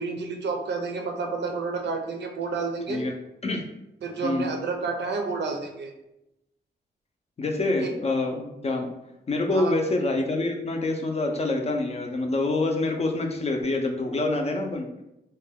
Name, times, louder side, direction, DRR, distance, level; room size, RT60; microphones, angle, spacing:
voice 1, 0.0-3.0 4.0-5.9 7.8-7.9 9.5-9.7, right 4 dB, 80° right, 3 dB, 0.5 m, -30 dB
voice 2, 4.2-4.5 7.4-8.9 9.3-14.9, left 2 dB, 35° left, 3 dB, 0.5 m, -26 dB
2.6 x 2.2 x 3.5 m, 0.88 s
wide cardioid pair, 90°, 18 cm